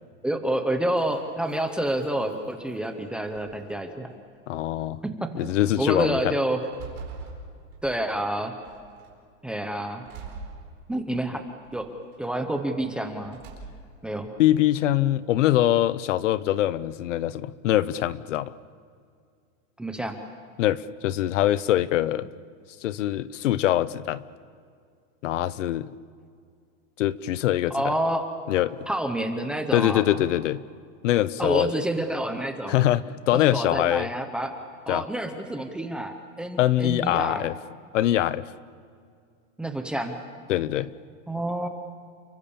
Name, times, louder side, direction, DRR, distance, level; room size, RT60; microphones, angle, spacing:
voice 1, 0.2-4.1 5.0-5.5 5.8-6.6 7.8-8.5 9.4-10.0 10.9-11.4 11.7-11.9 12.2-13.4 14.0-14.4 19.8-20.2 27.7-28.3 28.9-30.0 31.4-32.8 33.3-34.5 34.9-37.5 39.6-40.2 41.3-41.7, right 1 dB, ahead, 5 dB, 0.7 m, -28 dB
sound 1, 1.0-2.9 3.3-4.1 4.8-4.9 5.4-5.7 6.3-8.2 8.7-9.2 10.0-11.2 11.7-12.3 13.2-14.0, right 4 dB, 30° right, 4.8 m, -44 dB
voice 2, 4.5-5.0 5.3-6.3 14.4-18.5 20.6-22.3 22.8-24.2 25.2-25.9 27.0-27.9 28.5-28.8 29.7-30.6 31.0-31.7 32.7-34.1 34.9-35.0 36.6-37.5 37.9-38.5 40.5-40.9, left 13 dB, 70° left, 17 dB, 1.0 m, -23 dB
29.5 x 24.0 x 7.1 m, 2.2 s
supercardioid pair, 180°, 38 cm